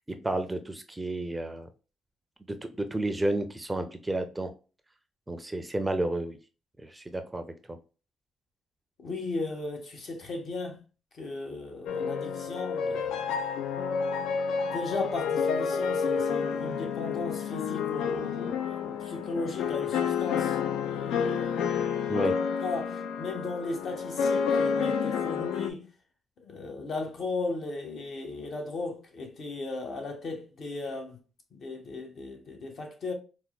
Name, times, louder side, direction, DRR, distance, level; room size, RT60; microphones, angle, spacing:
voice 1, 0.1-1.7 2.5-4.5 5.3-6.4 6.8-7.8 22.1-22.4, right 1 dB, 15° right, 0.4 m, -31 dB
voice 2, 9.0-10.8 11.1-13.2 14.7-20.6 20.9-21.9 22.6-25.9 26.4-31.2 31.5-33.1, left 3 dB, 55° left, 0.9 m, -36 dB
sound 1, 11.9-25.7, left 6 dB, 85° left, 0.3 m, -29 dB
4.3 x 2.1 x 2.3 m
cardioid pair, 90°, 0 cm